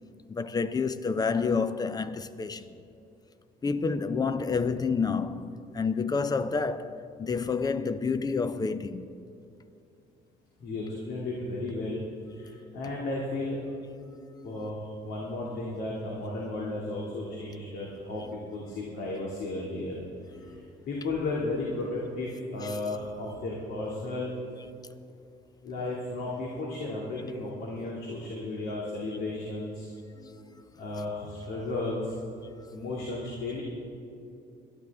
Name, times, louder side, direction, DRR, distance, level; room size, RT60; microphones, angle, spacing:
voice 1, 0.3-2.7 3.6-9.1 14.1-14.7 18.2-18.3 20.3-20.7 22.6-22.8 30.2-30.3, left 5 dB, 25° left, 0.6 m, -29 dB
voice 2, 10.6-12.0 12.3-13.7 14.4-20.0 20.4-20.6 20.9-24.4 25.6-29.9 30.8-32.1 32.7-33.6, left 2 dB, 70° left, 2.4 m, -34 dB
22.0 x 11.5 x 3.5 m
cardioid pair, 110°, 17 cm